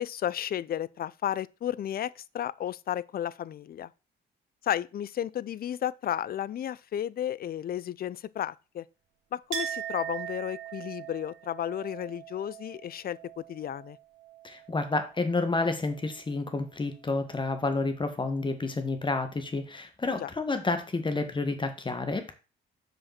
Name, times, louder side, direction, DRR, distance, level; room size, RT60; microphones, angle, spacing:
voice 1, 0.0-3.9 4.6-8.8 9.3-14.0 20.2-20.3, left 10 dB, 50° left, 0.5 m, -33 dB
Chink clink, 9.5-15.0 15.3-16.2, right 10 dB, 85° right, 1.5 m, -40 dB
voice 2, 14.4-22.3, left 3 dB, 25° left, 1.6 m, -30 dB
6.3 x 5.2 x 5.8 m
cardioid pair, 90°, 20 cm